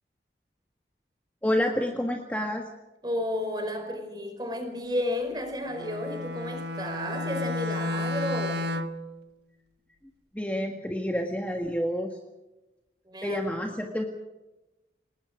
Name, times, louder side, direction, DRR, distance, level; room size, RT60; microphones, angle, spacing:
voice 1, 1.4-2.6 10.3-12.1 13.2-14.0, equal, 10° left, 2 dB, 1.7 m, -28 dB
voice 2, 3.0-8.6 13.1-14.0, left 1 dB, 25° right, 5 dB, 4.8 m, -32 dB
Bowed string instrument, 5.7-9.1, left 2 dB, 75° right, 1.3 m, -32 dB
30.0 x 19.5 x 5.1 m, 1.0 s
head